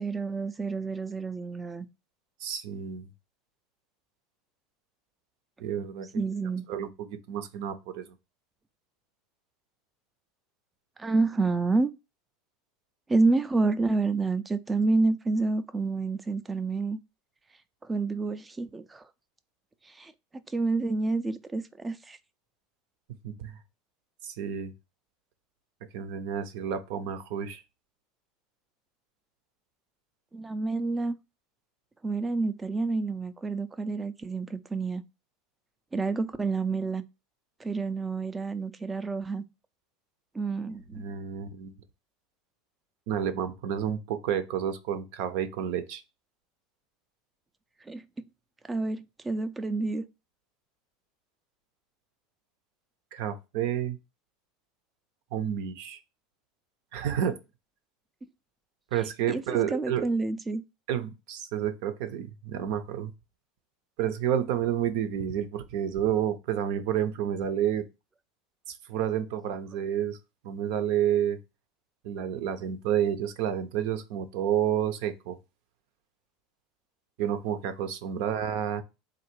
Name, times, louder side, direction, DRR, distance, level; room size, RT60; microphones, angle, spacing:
voice 1, 0.0-1.9 6.1-6.6 11.0-11.9 13.1-17.0 17.8-19.0 19.9-22.2 30.3-31.1 32.0-35.0 35.9-37.0 37.6-39.4 40.3-41.0 47.9-48.0 48.7-50.0 59.3-59.4 59.7-60.6, right 3 dB, 15° right, 0.5 m, -28 dB
voice 2, 2.4-3.1 5.6-6.1 6.7-8.1 23.2-23.6 24.2-24.7 25.9-27.6 40.9-41.8 43.1-46.0 53.1-54.0 55.3-56.0 56.9-57.4 58.9-60.1 60.9-63.1 64.0-67.8 68.9-70.2 70.4-71.4 72.0-75.4 77.2-78.8, right 9 dB, 70° right, 0.7 m, -30 dB
3.9 x 2.5 x 4.5 m
supercardioid pair, 120°, 0 cm